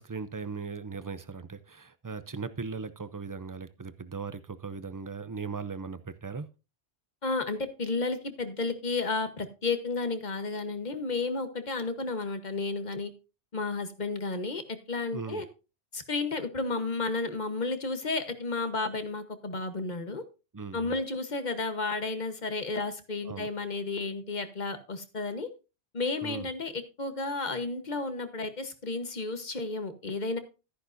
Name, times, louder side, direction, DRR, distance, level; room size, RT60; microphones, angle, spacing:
voice 1, 0.0-6.5 15.1-15.4 20.5-20.9 23.3-23.5 26.2-26.5, right 5 dB, 30° right, 0.4 m, -38 dB
voice 2, 7.2-13.1 13.5-15.5 15.9-20.2 20.7-25.5 25.9-30.4, left 3 dB, 40° left, 1.3 m, -32 dB
13.5 x 10.0 x 2.6 m
omnidirectional pair, 1.1 m